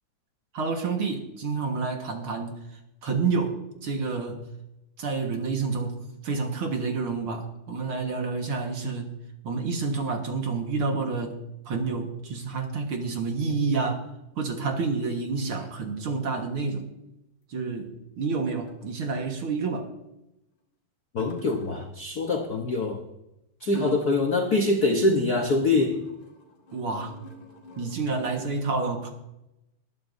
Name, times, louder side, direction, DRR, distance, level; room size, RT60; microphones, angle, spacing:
voice 1, 0.5-2.6 3.0-4.5 5.0-9.2 9.4-11.4 11.7-14.0 14.4-16.9 17.5-19.9 26.7-27.2 27.8-29.1, right 4 dB, 55° right, 3 dB, 2.0 m, -29 dB
sound 1, 12.3-12.4 13.5-13.9 16.0-16.1 16.4-16.5 18.7-19.2 21.2-22.0 23.7-24.4 24.7-28.4, left 3 dB, 40° left, 2.3 m, -46 dB
voice 2, 21.1-23.0 23.6-26.0, left 2 dB, 80° left, 3 dB, 0.8 m, -24 dB
20.0 x 12.0 x 2.7 m, 0.89 s
omnidirectional pair, 3.3 m